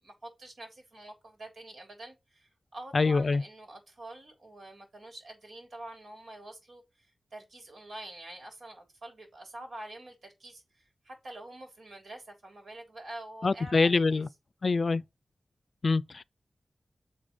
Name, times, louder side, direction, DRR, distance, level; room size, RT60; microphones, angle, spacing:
voice 1, 0.0-14.3, right 1 dB, 80° right, 3.5 m, -46 dB
voice 2, 2.9-3.4 13.4-14.3 14.6-15.0 15.8-16.2, left 4 dB, 55° left, 0.4 m, -25 dB
6.7 x 4.9 x 5.4 m
wide cardioid pair, 105°, 0 cm